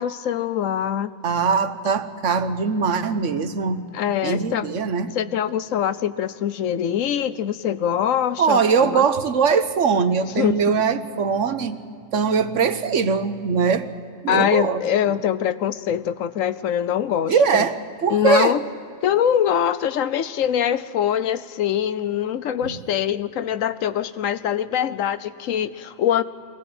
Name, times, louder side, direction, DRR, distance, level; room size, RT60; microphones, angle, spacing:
voice 1, 0.0-1.1 3.9-4.7 5.1-9.0 10.4-10.5 14.3-17.7 18.1-18.6 19.0-26.2, left 9 dB, 85° left, 14 dB, 1.2 m, -23 dB
voice 2, 1.2-3.9 4.2-5.1 8.4-11.8 12.1-13.9 14.2-14.8 17.3-18.6 22.6-22.8, right 6 dB, 70° right, 11 dB, 1.3 m, -21 dB
23.5 x 18.0 x 7.8 m, 2.5 s
omnidirectional pair, 1.3 m